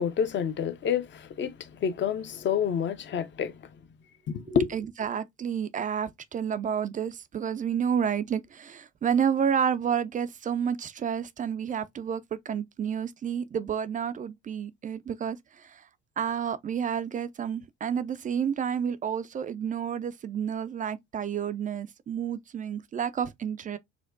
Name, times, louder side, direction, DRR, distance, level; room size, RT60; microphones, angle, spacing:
voice 1, 0.0-3.6 4.3-4.7, left 7 dB, 35° left, 0.5 m, -28 dB
voice 2, 4.5-15.9 16.2-23.8, right 8 dB, 25° right, 0.3 m, -30 dB
4.3 x 2.1 x 2.4 m
hypercardioid pair, 60°, 34 cm